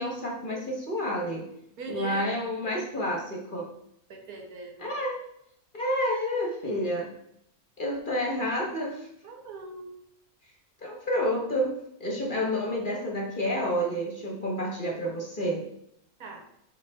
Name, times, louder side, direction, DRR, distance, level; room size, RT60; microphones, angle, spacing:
voice 1, 0.0-1.5 1.9-3.7 4.8-5.2 5.7-7.1 7.8-9.1 10.8-15.6, equal, 35° left, 0 dB, 1.2 m, -29 dB
voice 2, 1.8-2.4 4.1-4.9 9.2-10.0 16.2-16.5, right 3 dB, 75° right, 3 dB, 1.5 m, -41 dB
5.7 x 5.7 x 3.5 m, 0.72 s
omnidirectional pair, 1.6 m